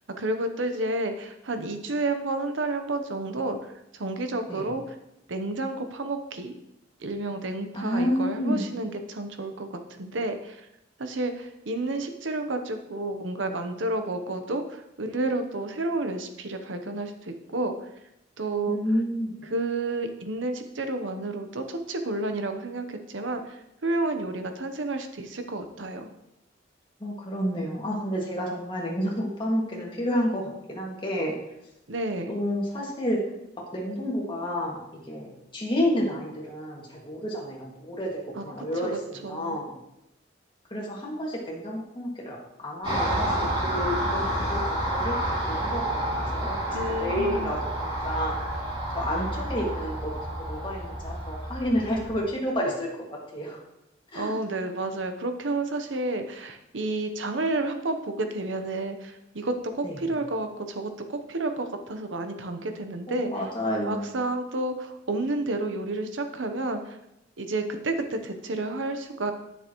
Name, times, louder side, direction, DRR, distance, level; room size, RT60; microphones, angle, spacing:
voice 1, 0.2-5.0 5.3-6.5 7.0-10.7 11.0-17.9 18.4-18.8 19.5-26.1 31.9-32.3 38.4-38.5 38.8-39.6 46.7-47.5 54.1-63.4 63.9-67.0 67.4-69.3, right 2 dB, 85° right, 7 dB, 0.9 m, -30 dB
voice 2, 7.7-8.7 18.7-19.3 27.0-30.4 30.7-31.3 32.3-33.2 33.7-39.8 40.7-44.7 44.9-46.6 47.0-48.4 48.9-50.1 50.4-53.1 53.3-53.6 54.1-54.3 59.8-60.0 63.1-64.2, equal, 25° left, -3 dB, 2.0 m, -30 dB
Car passing by, 42.8-52.2, right 1 dB, 25° right, 3.0 m, -29 dB
10.5 x 6.7 x 3.0 m, 0.85 s
head